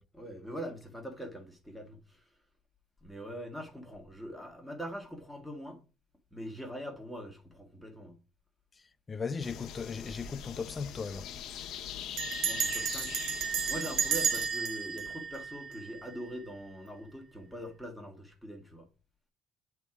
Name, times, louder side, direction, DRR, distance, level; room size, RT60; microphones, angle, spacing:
voice 1, 0.1-2.2 3.0-5.8 6.3-8.2 11.8-12.0 12.4-13.2 13.7-18.9, equal, ahead, 1.5 m, -42 dB
voice 2, 9.1-11.3, left 5 dB, 25° left, 0.4 m, -37 dB
sound 1, 9.4-14.5, left 10 dB, 60° left, 0.8 m, -43 dB
Bell, 10.0-10.4 10.7-10.8 11.0-11.4 12.2-16.3, right 7 dB, 70° right, 1.0 m, -33 dB
8.1 x 3.5 x 4.7 m
cardioid pair, 135°, 0 cm